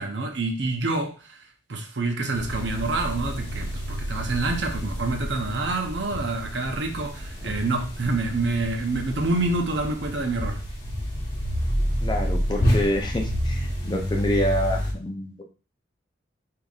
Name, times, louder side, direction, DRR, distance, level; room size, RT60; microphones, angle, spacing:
voice 1, 0.0-1.4 1.7-10.6, right 2 dB, 70° right, 4 dB, 0.7 m, -27 dB
sound 1, 2.3-14.9, equal, 40° left, 1.3 m, -29 dB
voice 2, 12.0-15.4, equal, 25° left, 2 dB, 0.6 m, -27 dB
5.0 x 2.8 x 2.4 m, 0.37 s
head